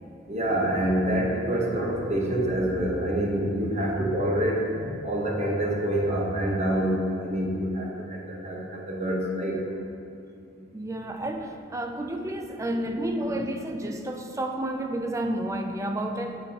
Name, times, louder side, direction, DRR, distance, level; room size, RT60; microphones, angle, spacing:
voice 1, 0.3-4.6 5.0-8.2 8.4-9.6 13.2-13.3, right 1 dB, 35° right, -2 dB, 1.0 m, -26 dB
voice 2, 10.7-16.4, right 1 dB, 15° right, 4 dB, 0.3 m, -31 dB
7.8 x 6.7 x 2.9 m, 2.4 s
head